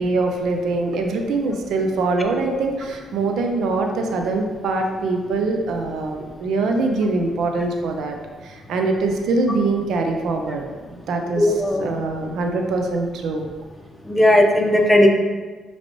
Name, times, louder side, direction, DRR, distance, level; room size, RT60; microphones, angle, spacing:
voice 1, 0.0-8.2 8.4-11.5 11.8-13.5, right 3 dB, 75° right, 3 dB, 0.5 m, -23 dB
voice 2, 11.4-11.9 14.1-15.1, left 1 dB, 10° left, 1 dB, 0.6 m, -16 dB
5.1 x 3.3 x 3.0 m, 1.4 s
cardioid pair, 90°, 0 cm